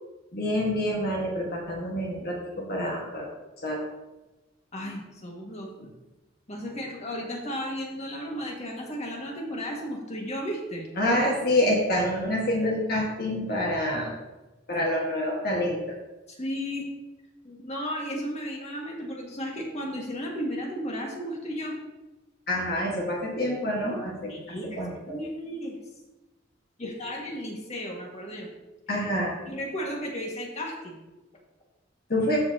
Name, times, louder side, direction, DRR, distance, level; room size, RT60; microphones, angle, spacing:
voice 1, 0.3-3.3 3.6-3.8 11.0-14.1 14.7-15.9 22.5-24.3 24.8-25.2 28.9-29.4 32.1-32.4, left 1 dB, 55° left, -2 dB, 1.6 m, -27 dB
voice 2, 4.7-5.7 6.5-10.9 16.3-16.9 17.4-21.8 24.3-24.8 25.1-25.8 26.8-28.5 29.5-31.0, equal, 35° left, -1 dB, 1.8 m, -34 dB
14.0 x 5.4 x 2.8 m, 1.1 s
head